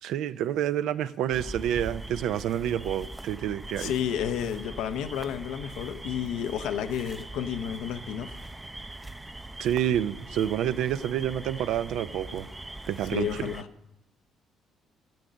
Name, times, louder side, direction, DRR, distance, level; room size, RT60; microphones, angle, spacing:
voice 1, 0.0-3.9 9.6-12.5 12.9-13.5, right 10 dB, 80° right, 14 dB, 0.4 m, -28 dB
sound 1, 1.3-13.6, right 2 dB, 15° right, 0.5 m, -41 dB
voice 2, 3.8-8.4 13.1-13.7, left 9 dB, 85° left, 10 dB, 0.6 m, -31 dB
12.0 x 7.9 x 6.3 m, 0.92 s
cardioid pair, 80°, 0 cm